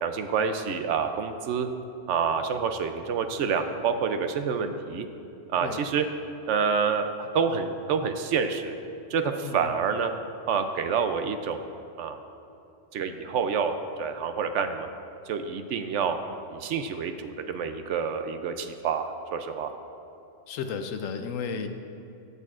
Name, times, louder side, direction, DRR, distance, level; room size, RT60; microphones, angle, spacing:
voice 1, 0.0-1.7 2.1-5.1 5.5-6.0 6.5-8.8 9.1-10.1 10.5-11.6 12.0-12.2 12.9-14.9 15.3-16.2 16.5-19.7, right 6 dB, 70° right, 7 dB, 0.9 m, -28 dB
voice 2, 9.4-9.8 20.5-21.7, left 6 dB, 80° left, 7 dB, 1.0 m, -33 dB
16.5 x 6.7 x 2.4 m, 2.7 s
omnidirectional pair, 1.3 m